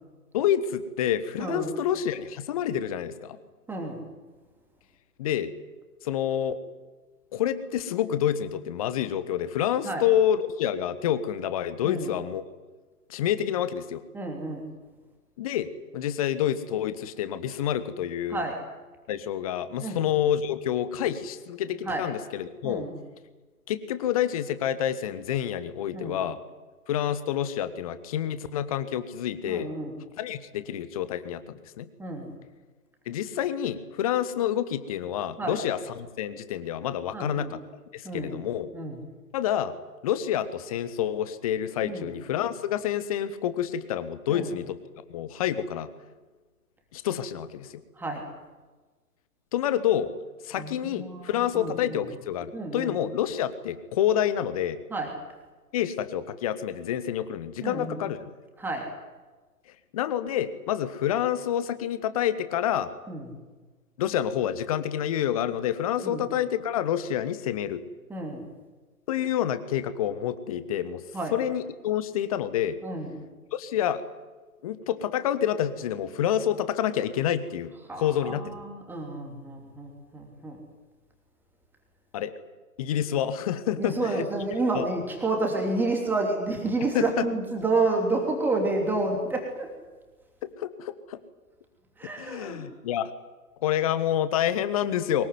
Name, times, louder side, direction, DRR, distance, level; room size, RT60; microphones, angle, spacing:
voice 1, 0.3-3.3 5.2-5.5 6.0-6.6 7.3-12.4 13.1-14.0 15.4-18.4 19.1-22.9 23.7-26.4 26.9-29.7 30.2-31.9 33.1-37.6 37.9-38.7 39.3-39.7 40.0-44.8 45.1-45.9 46.9-47.7 49.5-50.1 50.4-54.8 55.7-58.3 59.9-62.9 64.0-67.8 69.1-71.0 71.3-72.8 73.5-74.0 74.6-78.6 82.1-82.3 82.8-84.0 84.7-84.8 86.9-87.1 90.6-91.2 92.2-93.1 93.6-95.3, left 10 dB, 25° left, 13 dB, 1.3 m, -28 dB
voice 2, 1.4-1.7 3.7-4.0 9.8-10.1 11.8-12.1 14.1-14.7 18.3-18.6 19.8-20.0 21.8-22.1 22.6-23.0 25.9-26.2 29.5-29.9 32.0-32.4 35.4-35.6 37.1-37.5 38.0-38.4 38.7-39.0 41.8-42.1 44.3-44.5 47.9-48.2 50.5-52.0 52.5-53.0 54.9-55.1 57.6-58.0 58.6-58.9 63.1-63.3 66.0-66.3 68.1-68.5 71.1-71.4 72.8-73.2 77.9-80.6 83.8-89.7 92.0-92.7, right 2 dB, 5° right, 1 dB, 3.1 m, -30 dB
23.5 x 21.5 x 9.6 m, 1.3 s
figure-of-eight pair, 135°, 46 cm